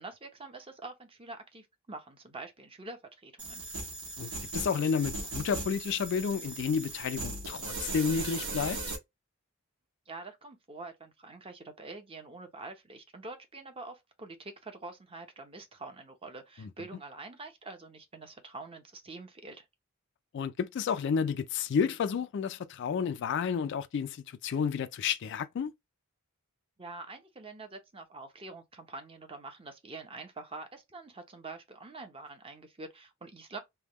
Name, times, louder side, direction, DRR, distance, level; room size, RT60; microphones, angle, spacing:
voice 1, 0.0-3.6 10.1-19.6 26.8-33.6, right 3 dB, 25° right, 0.7 m, -46 dB
sound 1, 3.4-9.0, right 2 dB, 80° right, 1.2 m, -38 dB
voice 2, 4.2-8.8 16.6-16.7 20.3-25.7, left 6 dB, 55° left, 0.3 m, -31 dB
3.4 x 2.2 x 3.0 m
head